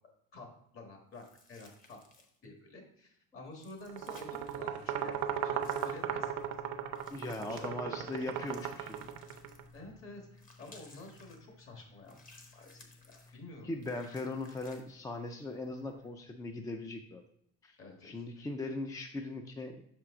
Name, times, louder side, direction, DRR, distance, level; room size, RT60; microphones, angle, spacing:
voice 1, 0.7-1.2 1.5-2.0 2.4-6.3 7.3-8.1 9.7-12.2 12.5-13.7 17.8-18.5, left 2 dB, 45° left, 2 dB, 1.5 m, -50 dB
sound 1, 1.1-2.4 3.5-4.6 5.6-6.0 7.0-7.7 8.4-9.8 10.4-11.4 12.1-13.3 13.8-14.8, left 2 dB, 30° left, 0.9 m, -59 dB
sound 2, 3.9-9.6, right 9 dB, 70° right, 0.6 m, -37 dB
sound 3, 5.9-16.1, left 3 dB, 65° left, 2.4 m, -60 dB
voice 2, 7.1-9.1 13.6-17.2 17.6-17.8 18.0-19.8, left 2 dB, 10° left, 5 dB, 0.3 m, -39 dB
5.9 x 4.5 x 3.7 m, 0.71 s
cardioid pair, 125°, 30 cm